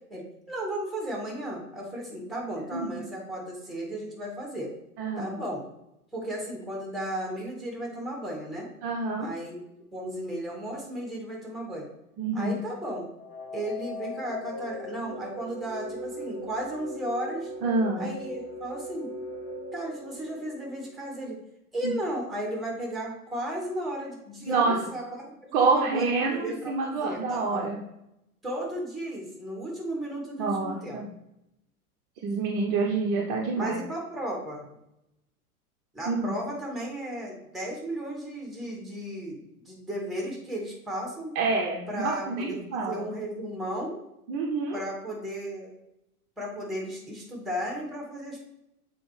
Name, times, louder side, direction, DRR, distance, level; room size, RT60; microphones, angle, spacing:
voice 1, 0.1-4.7 5.1-5.6 6.1-8.7 9.2-9.6 9.9-11.9 12.3-13.1 13.5-17.5 18.0-19.1 19.7-21.4 21.7-25.0 25.6-27.7 28.4-31.0 33.5-34.7 35.9-39.4 39.6-41.4 41.9-42.6 42.9-44.0 44.7-45.7 46.4-48.5, right 1 dB, ahead, -1 dB, 1.8 m, -34 dB
voice 2, 2.7-3.0 5.0-5.4 8.8-9.3 12.2-12.5 17.6-18.1 21.8-21.9 24.5-24.8 25.5-27.8 30.4-31.1 32.2-33.8 36.1-36.4 41.3-43.0 44.3-44.8, right 3 dB, 35° right, -1 dB, 0.8 m, -27 dB
sound 1, 13.2-21.1, left 1 dB, 15° left, 0.3 m, -39 dB
7.0 x 4.3 x 3.2 m, 0.85 s
figure-of-eight pair, 90°, 45 cm